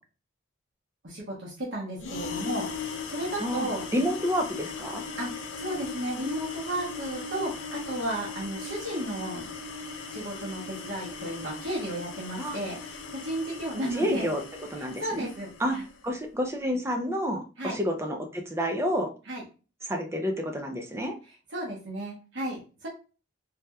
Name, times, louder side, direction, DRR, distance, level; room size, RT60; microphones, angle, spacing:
voice 1, 1.0-2.7 3.1-3.8 5.2-9.4 10.1-14.3 15.0-15.8 17.6-17.8 19.3-19.4 21.5-22.9, right 1 dB, 75° right, -4 dB, 1.0 m, -33 dB
sound 1, 2.0-15.9, left 4 dB, 80° left, 0.5 m, -38 dB
voice 2, 3.4-5.0 12.4-12.6 13.9-14.4 14.7-15.3 15.6-15.8 16.0-19.1 19.8-21.1, equal, 15° right, 3 dB, 0.4 m, -29 dB
3.3 x 2.8 x 2.2 m, 0.34 s
head